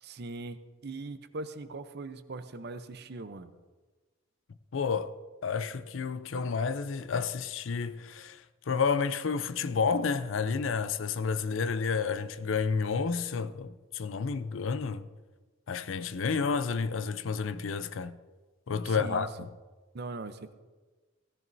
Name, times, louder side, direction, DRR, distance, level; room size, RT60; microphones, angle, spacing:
voice 1, 0.0-3.6 18.8-19.3 19.9-20.5, right 3 dB, 55° right, 0.7 m, -40 dB
voice 2, 4.7-5.1 5.4-15.1 15.7-18.2 18.7-19.5, left 5 dB, 80° left, 0.5 m, -30 dB
17.0 x 13.5 x 2.7 m
head